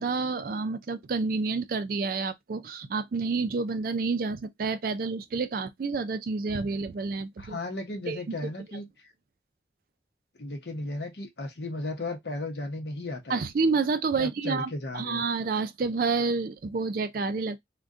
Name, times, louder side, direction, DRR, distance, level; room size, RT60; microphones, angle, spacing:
voice 1, 0.0-7.6 8.1-8.5 13.3-17.6, right 4 dB, 50° right, 0.4 m, -29 dB
voice 2, 7.4-9.1 10.4-13.4 14.2-15.2, left 2 dB, 65° left, 0.8 m, -35 dB
2.5 x 2.2 x 3.6 m
head